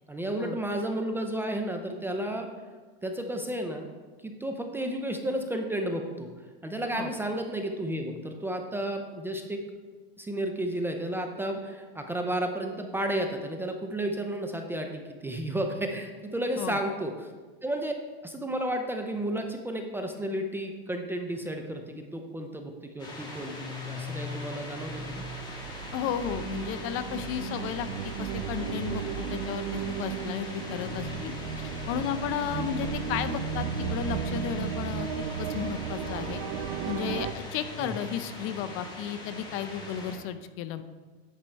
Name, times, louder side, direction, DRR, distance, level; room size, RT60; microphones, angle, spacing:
voice 1, 0.1-2.5 3.0-3.9 4.2-6.3 6.6-9.6 10.2-17.1 17.6-17.9 18.2-25.2 37.8-37.9, right 1 dB, 5° right, 4 dB, 0.4 m, -32 dB
sound 1, 23.0-40.2, left 2 dB, 15° left, 1.6 m, -40 dB
sound 2, 24.9-37.3, right 8 dB, 60° right, 0.6 m, -35 dB
voice 2, 25.9-31.3 31.6-35.1 35.4-36.4 36.8-40.8, left 9 dB, 45° left, 11 dB, 0.5 m, -34 dB
10.5 x 4.6 x 4.4 m, 1.4 s
supercardioid pair, 135°, 31 cm